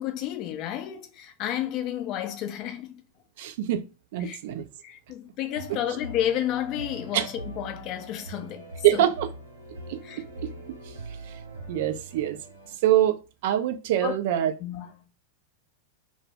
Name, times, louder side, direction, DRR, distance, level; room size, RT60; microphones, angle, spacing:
voice 1, 0.0-3.0 4.2-4.4 4.8-9.1 10.0-10.2 14.0-14.2 14.6-15.0, left 11 dB, 40° left, 0.4 m, -31 dB
voice 2, 3.4-3.8 4.1-4.7 7.1-7.2 8.8-9.3 9.9-10.5 10.9-11.0 11.3-11.4 11.7-12.4 12.8-14.5, right 12 dB, 50° right, 0.3 m, -24 dB
sound 1, 5.5-12.7, right 2 dB, 85° right, 0.7 m, -42 dB
2.1 x 2.0 x 3.2 m
figure-of-eight pair, 90°, 0 cm